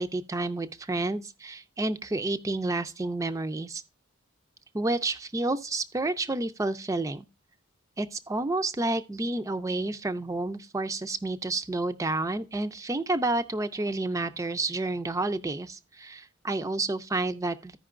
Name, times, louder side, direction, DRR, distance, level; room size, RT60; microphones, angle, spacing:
voice 1, 0.0-3.8 4.7-7.2 8.0-17.8, right 2 dB, 15° right, 0.4 m, -30 dB
15.0 x 5.2 x 2.4 m
head